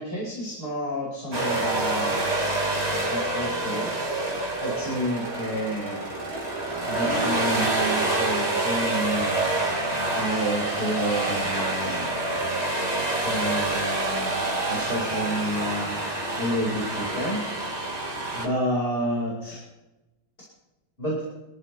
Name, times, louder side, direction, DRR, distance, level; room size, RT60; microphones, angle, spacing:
voice 1, 0.0-2.8 3.1-3.9 4.2-4.3 4.6-6.0 6.9-9.4 10.1-12.1 13.2-16.0 16.4-17.4 18.3-19.6 21.0-21.3, equal, 30° left, -6 dB, 5.2 m, -30 dB
sound 1, 1.3-18.5, right 2 dB, 20° right, 2.6 m, -27 dB
25.5 x 14.0 x 3.4 m, 1.0 s
omnidirectional pair, 1.8 m